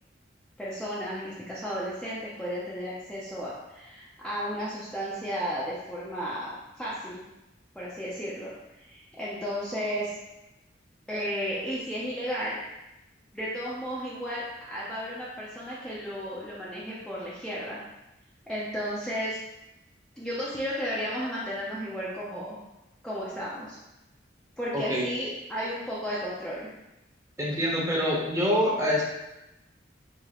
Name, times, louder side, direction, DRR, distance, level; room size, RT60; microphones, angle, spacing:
voice 1, 0.6-7.2 7.7-8.5 8.8-10.2 11.1-12.6 13.3-17.8 18.5-19.4 20.2-22.6 23.0-23.8 24.6-26.7, equal, 5° left, -9 dB, 0.6 m, -33 dB
voice 2, 24.7-25.1 27.4-29.0, equal, 15° right, -5 dB, 1.0 m, -25 dB
4.8 x 3.3 x 3.0 m, 0.95 s
head